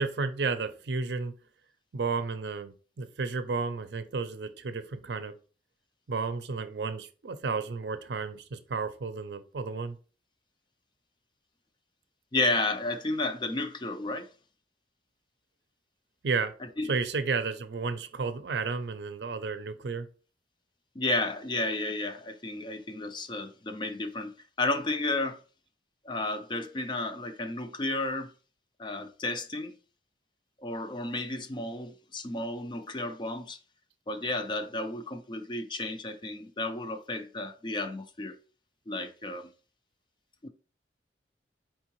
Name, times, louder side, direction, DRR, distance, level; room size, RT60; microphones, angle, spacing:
voice 1, 0.0-1.3 1.9-5.3 6.1-10.0 16.2-16.5 16.8-20.1, right 4 dB, 70° right, 0.5 m, -32 dB
voice 2, 12.3-14.3 16.8-16.9 21.0-25.4 26.0-28.3 28.8-29.7 30.6-33.6 34.1-38.4 38.9-39.5 40.4-40.5, left 2 dB, 25° left, 0.4 m, -32 dB
4.5 x 3.6 x 3.0 m
head